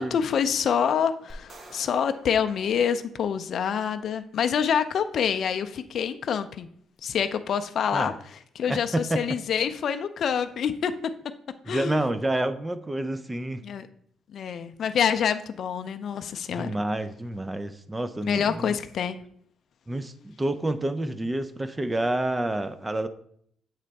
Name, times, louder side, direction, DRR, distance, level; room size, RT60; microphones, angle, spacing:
voice 1, 0.0-6.7 7.0-8.1 8.6-10.9 11.7-12.0 13.6-13.9 14.3-16.7 18.2-19.2, left 7 dB, 60° left, 9 dB, 0.4 m, -26 dB
sound 1, 1.3-3.7, right 2 dB, 45° right, 1.0 m, -50 dB
voice 2, 8.7-9.4 11.7-13.7 16.6-18.8 19.9-23.1, right 1 dB, 15° right, 11 dB, 0.5 m, -29 dB
7.4 x 3.2 x 4.0 m, 0.66 s
cardioid pair, 90°, 0 cm